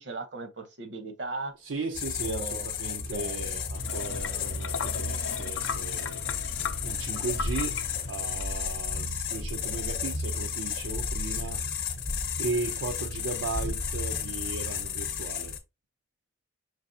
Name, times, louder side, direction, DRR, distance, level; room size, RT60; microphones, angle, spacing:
voice 1, 0.0-1.5 2.2-3.5, right 3 dB, 70° right, 0.9 m, -38 dB
voice 2, 1.6-6.3 6.8-7.8 8.1-11.7 12.4-15.6, right 3 dB, 85° right, 0.5 m, -36 dB
sound 1, 1.9-15.6, left 6 dB, 50° left, 0.7 m, -33 dB
sound 2, 3.1-5.2 5.7-10.3 10.7-13.0 13.3-14.3, left 1 dB, 5° left, 0.5 m, -39 dB
sound 3, 3.7-8.8, left 5 dB, 80° left, 0.5 m, -38 dB
5.3 x 3.3 x 2.7 m
head